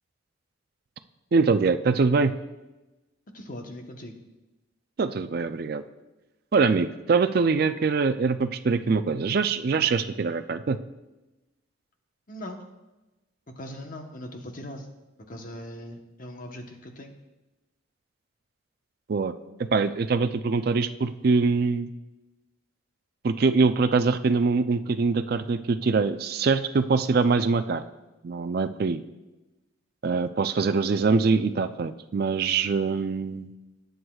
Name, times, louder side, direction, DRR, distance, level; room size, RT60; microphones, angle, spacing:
voice 1, 1.3-2.3 5.0-5.8 6.5-10.8 19.1-19.3 19.7-21.9 23.2-27.8 28.2-29.0 30.0-33.5, right 4 dB, 50° right, 10 dB, 0.4 m, -23 dB
voice 2, 3.3-4.1 12.3-12.6 13.6-14.9 15.3-17.1, left 1 dB, 40° left, 4 dB, 1.0 m, -40 dB
19.0 x 7.9 x 2.3 m, 1.1 s
head